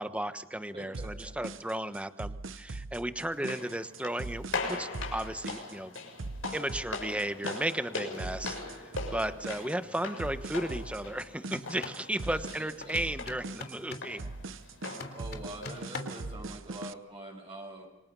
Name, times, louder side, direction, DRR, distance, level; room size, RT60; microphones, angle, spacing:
voice 1, 0.0-5.9 6.5-14.2, right 1 dB, 5° right, 10 dB, 1.1 m, -34 dB
voice 2, 0.7-1.3 12.3-13.0 15.1-17.9, right 1 dB, 25° right, 0 dB, 5.9 m, -45 dB
sound 1, 0.9-16.9, right 3 dB, 75° right, 0.9 m, -41 dB
sound 2, 3.3-16.3, left 3 dB, 75° left, 6.7 m, -41 dB
sound 3, 11.4-12.1 12.8-14.2 14.8-16.3, left 3 dB, 50° left, 3.2 m, -43 dB
28.5 x 25.0 x 5.6 m, 0.93 s
head